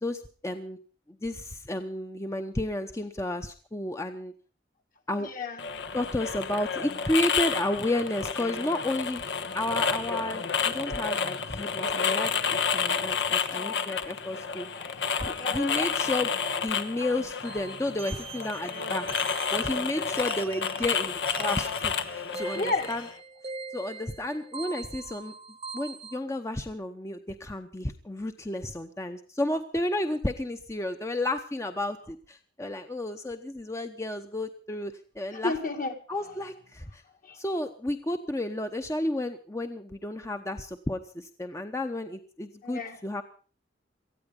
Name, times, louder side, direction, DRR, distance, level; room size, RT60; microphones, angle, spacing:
voice 1, 0.0-0.8 1.1-4.3 5.1-5.3 5.9-14.7 15.2-16.3 16.6-23.1 23.7-25.3 25.7-35.5 36.1-37.0 37.3-43.2, left 1 dB, 15° left, 7 dB, 0.8 m, -32 dB
voice 2, 5.2-5.6 14.7-16.0 22.5-22.9 35.3-35.9 37.2-37.4 42.6-43.0, left 3 dB, 50° left, 5 dB, 2.1 m, -33 dB
sound 1, 5.6-23.1, left 6 dB, 75° left, 1.3 m, -30 dB
sound 2, 17.4-26.2, right 5 dB, 35° right, 0.9 m, -42 dB
19.0 x 14.0 x 5.3 m, 0.39 s
head